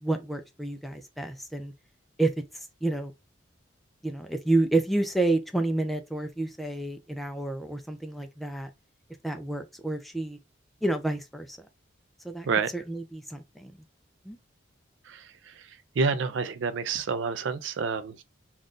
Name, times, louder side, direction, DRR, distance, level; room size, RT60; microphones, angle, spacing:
voice 1, 0.0-1.7 2.2-3.1 4.0-8.7 9.2-10.4 10.8-11.6 12.2-12.5 12.7-13.8 14.3-14.4, right 2 dB, ahead, 0.3 m, -29 dB
voice 2, 15.1-15.7 16.0-18.2, right 5 dB, 75° right, 0.4 m, -29 dB
2.6 x 2.4 x 3.5 m
head